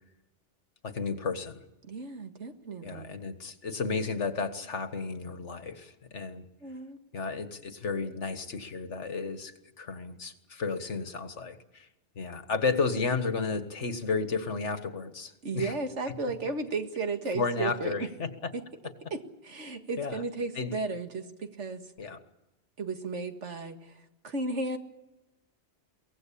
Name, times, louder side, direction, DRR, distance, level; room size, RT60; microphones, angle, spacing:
voice 1, 0.8-1.6 2.8-6.5 7.1-11.9 12.2-15.7 17.3-18.5 20.0-20.2 20.6-20.7 22.0-22.2, left 4 dB, 80° left, 9 dB, 1.9 m, -33 dB
voice 2, 1.8-3.1 6.6-7.0 15.4-18.1 18.5-18.6 19.1-21.9 22.8-24.8, right 3 dB, 85° right, 6 dB, 2.1 m, -34 dB
23.5 x 18.0 x 8.6 m, 0.98 s
omnidirectional pair, 1.2 m